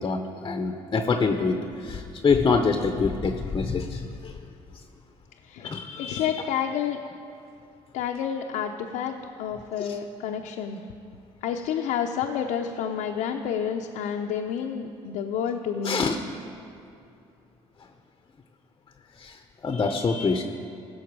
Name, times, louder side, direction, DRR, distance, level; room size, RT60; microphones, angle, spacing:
voice 1, 0.0-4.4 5.6-6.5 9.8-10.0 15.8-16.2 19.2-20.4, left 4 dB, 30° left, 6 dB, 0.7 m, -26 dB
voice 2, 6.0-7.0 7.9-10.8 11.4-16.1, left 8 dB, 75° left, 2 dB, 0.6 m, -29 dB
16.0 x 6.4 x 4.7 m, 2.5 s
supercardioid pair, 80°, 13 cm